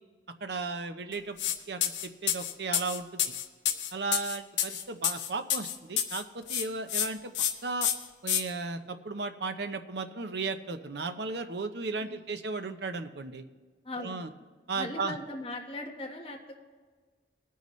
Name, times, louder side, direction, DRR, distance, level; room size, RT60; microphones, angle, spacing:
voice 1, 0.4-1.4 1.7-3.2 3.9-7.9 8.2-13.4 14.0-14.3 14.7-15.2, right 3 dB, 65° right, 8 dB, 0.8 m, -35 dB
sound 1, 1.4-1.6 1.8-6.2 6.5-7.1 7.3-7.5 7.8-8.4, left 10 dB, 80° left, 1.0 m, -29 dB
voice 2, 12.0-12.3 13.8-14.3 14.7-16.6, left 1 dB, 30° left, 1 dB, 1.3 m, -39 dB
21.0 x 9.3 x 3.2 m, 1.5 s
head